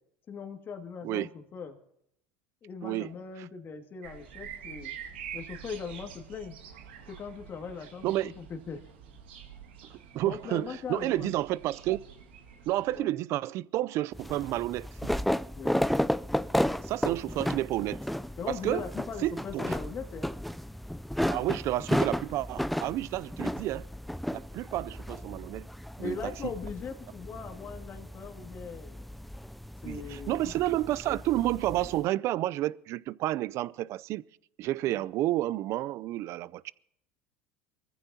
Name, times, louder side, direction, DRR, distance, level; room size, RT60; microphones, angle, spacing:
voice 1, 0.3-1.8 2.6-4.9 5.3-6.6 7.1-8.8 10.2-11.3 12.9-13.1 15.5-15.8 18.4-20.3 26.0-29.0 29.8-30.8 34.9-35.0, left 5 dB, 40° left, 2.1 m, -40 dB
sound 1, 4.0-13.0, right 8 dB, 85° right, 2.2 m, -46 dB
voice 2, 9.9-12.0 12.7-15.1 16.8-18.0 18.5-18.8 19.2-19.6 21.3-23.9 24.3-25.7 26.0-26.1 29.8-34.2 34.6-36.7, right 15 dB, 55° right, 0.5 m, -30 dB
sound 2, 14.1-32.0, equal, ahead, 0.4 m, -33 dB
23.5 x 15.0 x 2.8 m
hypercardioid pair, 90°, 6 cm